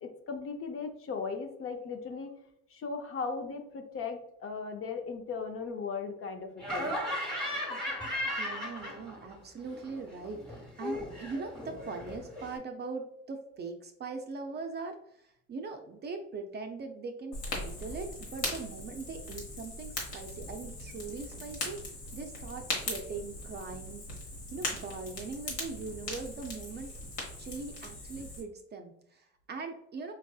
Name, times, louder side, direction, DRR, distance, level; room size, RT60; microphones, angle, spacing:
voice 1, 0.0-2.4 2.7-7.0, left 5 dB, 40° left, 5 dB, 0.6 m, -37 dB
Laughter, 6.6-9.4 9.7-12.6, equal, ahead, 1.1 m, -36 dB
voice 2, 8.4-14.9 15.5-21.8 22.1-24.0 24.5-26.9 27.4-30.1, right 4 dB, 30° right, 5 dB, 0.5 m, -41 dB
Fire, 17.3-28.4, left 2 dB, 80° left, 1.2 m, -39 dB
4.6 x 2.5 x 2.3 m, 0.74 s
supercardioid pair, 80°, 33 cm